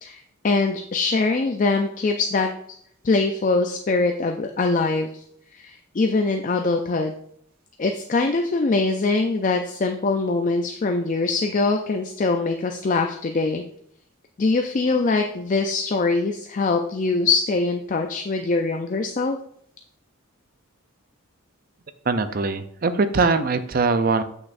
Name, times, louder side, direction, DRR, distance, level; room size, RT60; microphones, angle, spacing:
voice 1, 0.0-2.8 3.0-5.2 5.5-7.1 7.8-13.6 14.4-19.4, left 3 dB, 35° left, 4 dB, 0.4 m, -23 dB
voice 2, 22.1-24.2, right 4 dB, 40° right, 11 dB, 0.5 m, -21 dB
8.2 x 6.0 x 2.5 m, 0.69 s
head